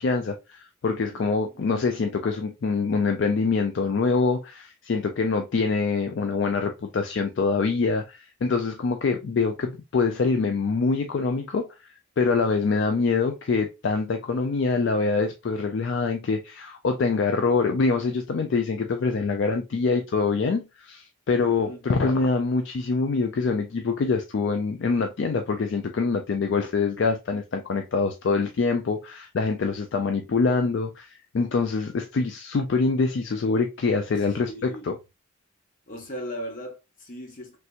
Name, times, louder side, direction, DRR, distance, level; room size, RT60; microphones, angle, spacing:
voice 1, 0.0-35.0, left 4 dB, 60° left, 0.3 m, -25 dB
voice 2, 21.4-21.8 34.4-34.9 35.9-37.6, equal, 40° left, 0.9 m, -38 dB
3.3 x 2.8 x 2.4 m
head